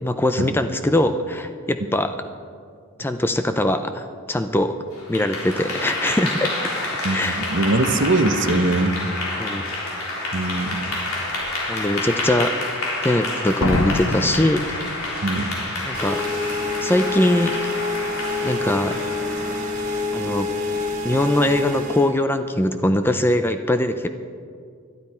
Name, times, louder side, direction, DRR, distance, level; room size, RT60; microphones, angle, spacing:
voice 1, 0.0-2.1 3.0-4.7 5.1-6.5 6.8-7.4 9.4-9.6 11.7-12.5 13.0-14.6 15.8-16.2 16.8-17.6 18.4-19.0 20.1-20.5 21.0-24.1, left 1 dB, 10° left, 8 dB, 0.4 m, -22 dB
Clapping / Applause, 4.9-20.2, left 2 dB, 85° left, 3.7 m, -29 dB
voice 2, 7.0-9.0 10.3-10.8 15.2-15.5, right 2 dB, 55° right, 8 dB, 0.9 m, -21 dB
Slam, 10.4-10.5 11.2-11.5 13.6-15.5 15.7-15.8, left 2 dB, 65° left, 1.0 m, -26 dB
sound 1, 15.9-22.1, left 3 dB, 35° right, 2.5 m, -27 dB
21.5 x 12.0 x 4.4 m, 2.3 s
head